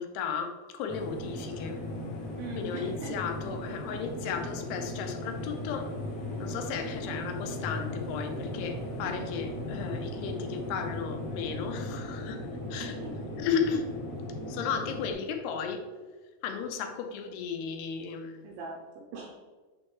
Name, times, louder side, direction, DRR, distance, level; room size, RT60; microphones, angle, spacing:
voice 1, 0.0-1.8 2.6-5.9 6.4-13.0 13.4-13.9 14.5-15.8 16.4-18.5, left 6 dB, 85° left, 6 dB, 2.7 m, -34 dB
sound 1, 0.9-15.1, left 1 dB, 65° left, 1.5 m, -37 dB
voice 2, 2.4-3.1 12.8-13.1 18.4-19.4, right 4 dB, 80° right, -1 dB, 2.1 m, -41 dB
8.5 x 4.4 x 3.2 m, 1.4 s
omnidirectional pair, 4.6 m